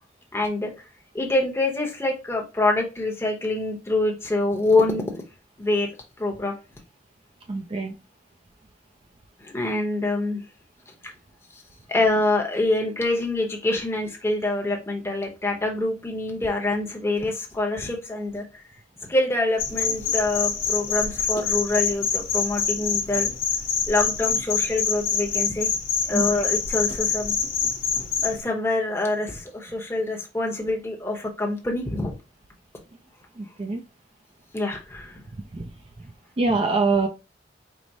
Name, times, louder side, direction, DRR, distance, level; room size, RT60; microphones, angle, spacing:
voice 1, 0.3-0.9 1.1-5.2 5.6-5.9 6.2-6.6 9.4-10.4 10.9-11.0 11.5-11.6 11.9-18.6 19.1-23.3 23.9-25.7 26.0-27.4 28.2-32.1 34.5-35.2, left 2 dB, 15° left, 1 dB, 0.8 m, -25 dB
voice 2, 7.5-7.9 26.1-26.2 33.4-33.8 35.5-35.6 36.4-37.1, right 3 dB, 30° right, 3 dB, 0.4 m, -24 dB
sound 1, 19.6-28.4, left 6 dB, 50° left, 1.0 m, -25 dB
4.7 x 2.0 x 4.0 m, 0.29 s
head